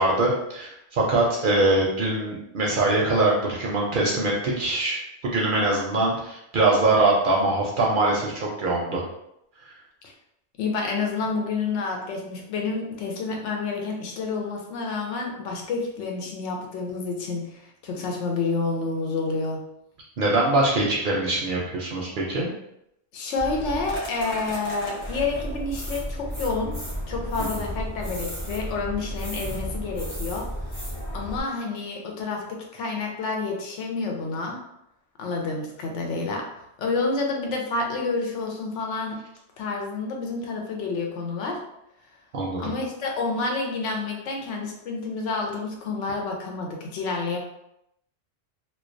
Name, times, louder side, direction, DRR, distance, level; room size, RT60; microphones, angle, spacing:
voice 1, 0.0-9.0 9.7-9.8 20.2-22.5 27.4-27.5 42.3-42.7, right 2 dB, 60° right, -3 dB, 0.6 m, -23 dB
voice 2, 10.6-19.6 23.1-26.8 27.1-30.9 31.1-34.6 35.2-36.5 36.8-39.2 39.6-41.6 42.6-47.4, left 3 dB, 85° left, 1 dB, 0.9 m, -29 dB
sound 1, 23.4-31.4, equal, 15° left, 0.7 m, -33 dB
2.2 x 2.2 x 2.5 m, 0.80 s
omnidirectional pair, 1.2 m